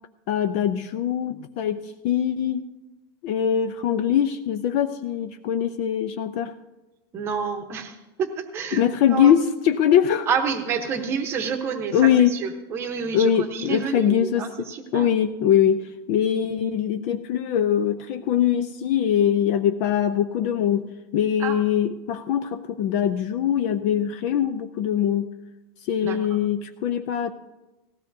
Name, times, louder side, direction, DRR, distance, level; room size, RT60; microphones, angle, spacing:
voice 1, 0.3-2.6 3.2-6.5 8.7-10.3 11.9-12.4 13.1-14.4 14.9-20.9 21.1-25.3 25.8-27.3, left 9 dB, 30° left, 8 dB, 0.4 m, -22 dB
voice 2, 7.1-9.3 10.3-15.1 21.4-21.5 26.0-26.4, right 6 dB, 20° right, 5 dB, 0.9 m, -29 dB
18.5 x 15.5 x 2.7 m, 1.1 s
supercardioid pair, 180°, 13 cm